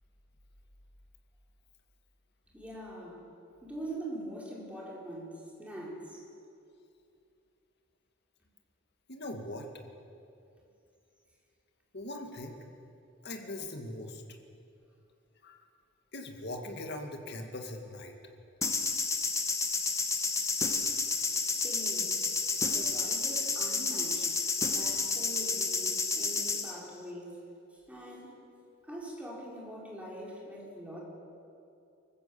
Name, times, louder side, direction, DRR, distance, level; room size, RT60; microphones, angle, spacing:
voice 1, 2.5-3.3 3.6-5.3 5.6-6.2 21.5-22.2 22.7-24.3 24.7-27.4 27.9-28.4 28.8-31.0, right 1 dB, 5° right, -4 dB, 4.6 m, -43 dB
voice 2, 9.1-9.7 11.9-12.6 13.2-14.2 15.4-15.6 16.1-18.1, left 1 dB, 55° left, 3 dB, 2.2 m, -40 dB
sound 1, 18.6-26.7, left 4 dB, 15° left, 1.3 m, -30 dB
24.5 x 15.0 x 7.3 m, 2.6 s
head